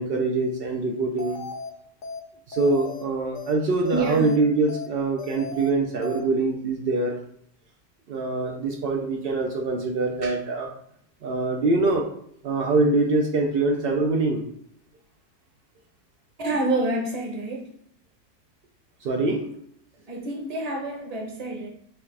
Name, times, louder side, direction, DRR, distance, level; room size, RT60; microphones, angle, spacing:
voice 1, 0.0-1.4 2.5-7.2 8.1-10.7 11.2-12.1 12.4-14.4 19.0-19.5, right 3 dB, 80° right, 1 dB, 0.5 m, -24 dB
sound 1, 1.2-1.7 2.0-2.2 2.5-3.0 3.3-3.5 3.8-4.4 4.7-4.9 5.2-5.7 6.0-6.2, left 2 dB, 65° left, 0.5 m, -36 dB
voice 2, 3.9-4.3 16.4-17.7 20.1-21.7, right 2 dB, 30° right, 1 dB, 0.8 m, -27 dB
6.0 x 2.4 x 3.3 m, 0.69 s
omnidirectional pair, 1.7 m